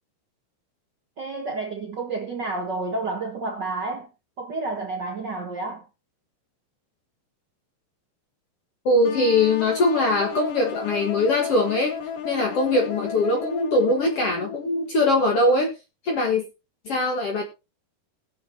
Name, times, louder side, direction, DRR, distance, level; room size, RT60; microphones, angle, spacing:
voice 1, 1.2-4.1 4.4-5.8, right 3 dB, 85° right, 0.9 m, -30 dB
voice 2, 8.8-12.0 12.2-15.7 16.0-16.4 16.8-17.4, left 2 dB, 55° left, 1.6 m, -21 dB
sound 1, 9.0-14.9, left 7 dB, 85° left, 3.9 m, -34 dB
21.0 x 7.6 x 2.8 m
omnidirectional pair, 4.8 m